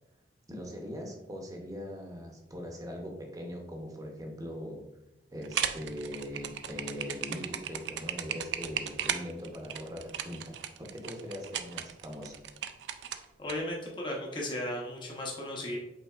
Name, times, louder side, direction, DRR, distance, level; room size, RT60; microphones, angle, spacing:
voice 1, 0.5-4.8 5.3-12.4, equal, 20° right, 2 dB, 0.8 m, -41 dB
sound 1, 5.4-13.5, right 9 dB, 75° right, 0.3 m, -36 dB
voice 2, 13.4-15.8, left 1 dB, 25° left, -2 dB, 0.9 m, -35 dB
5.5 x 3.9 x 2.4 m, 0.94 s
head